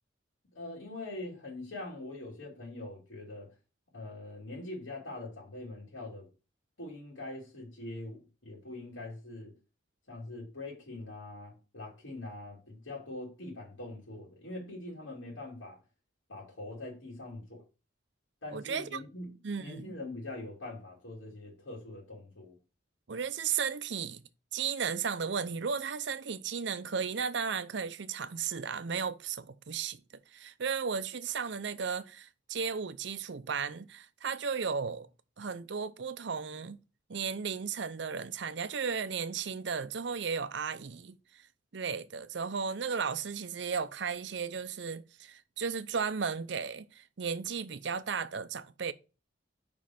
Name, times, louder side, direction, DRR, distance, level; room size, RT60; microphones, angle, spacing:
voice 1, 0.5-3.5 3.9-6.3 6.8-9.5 10.1-15.8 16.3-17.6 18.4-22.5, left 2 dB, 90° left, 2.9 m, -43 dB
voice 2, 18.5-19.0 19.4-20.0 23.1-24.2 24.5-30.0 30.3-35.1 35.4-36.8 37.1-41.2 41.7-48.9, right 6 dB, 65° right, 0.5 m, -35 dB
5.2 x 5.2 x 5.7 m
head